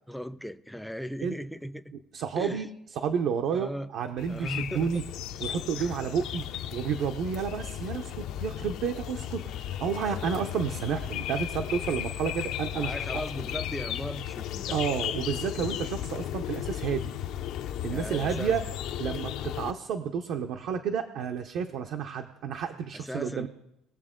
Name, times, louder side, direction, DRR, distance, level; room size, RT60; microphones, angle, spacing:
voice 1, 0.1-1.9 2.4-2.7 3.5-3.9 4.3-5.1 5.7-6.0 12.7-14.8 17.9-18.6 22.9-23.5, equal, ahead, 0.3 m, -37 dB
voice 2, 2.1-2.7 3.0-5.0 5.4-6.4 6.7-12.9 14.7-17.1 17.8-18.6 19.0-23.5, right 7 dB, 55° right, 0.6 m, -31 dB
sound 1, 4.2-19.7, left 11 dB, 55° left, 0.5 m, -35 dB
20.5 x 7.1 x 3.7 m
cardioid pair, 170°, 0 cm